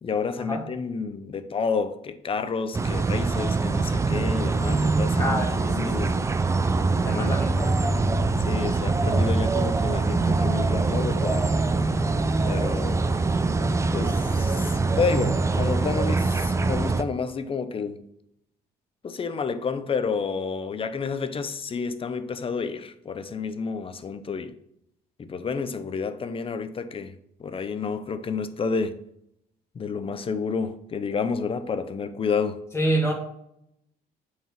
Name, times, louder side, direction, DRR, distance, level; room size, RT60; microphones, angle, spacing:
voice 1, 0.0-6.2 7.1-7.4 7.6-7.8 8.5-11.5 12.4-13.0 13.9-18.1 19.0-24.5 25.2-29.0 29.7-32.6, left 5 dB, 30° left, 0.8 m, -30 dB
sound 1, 2.7-17.0, right 3 dB, 15° right, 0.5 m, -24 dB
voice 2, 5.2-6.1 7.0-7.7 32.7-33.1, right 1 dB, 15° left, 2.4 m, -27 dB
8.6 x 4.8 x 5.9 m
cardioid pair, 110°, 17 cm